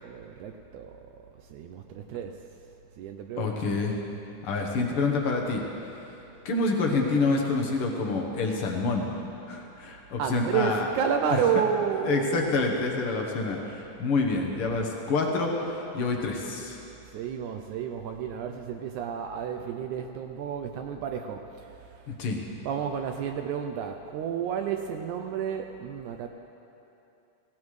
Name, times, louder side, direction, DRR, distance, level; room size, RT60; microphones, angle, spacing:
voice 1, 0.0-2.5 3.0-3.7 9.8-9.9 10.2-12.7 17.1-22.2 22.6-26.3, right 7 dB, 80° right, 4 dB, 1.9 m, -31 dB
voice 2, 3.4-4.0 4.4-5.6 6.4-9.1 9.5-10.9 12.1-16.8 22.2-22.4, left 3 dB, 65° left, 1 dB, 1.4 m, -27 dB
17.5 x 17.0 x 3.2 m, 2.9 s
omnidirectional pair, 3.7 m